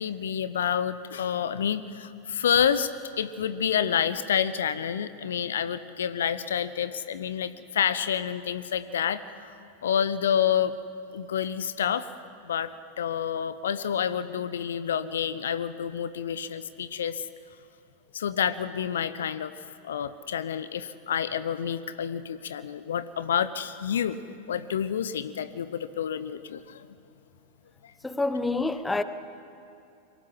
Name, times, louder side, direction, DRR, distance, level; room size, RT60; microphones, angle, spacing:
voice 1, 0.0-2.9 3.2-9.2 9.8-10.7 11.1-12.1 12.4-12.7 13.0-17.3 18.1-19.5 19.8-24.2 24.5-26.9, left 8 dB, 65° left, 0.8 m, -28 dB
voice 2, 28.0-29.0, left 2 dB, 10° left, 1.0 m, -27 dB
23.5 x 17.5 x 7.5 m
figure-of-eight pair, 90°, 0 cm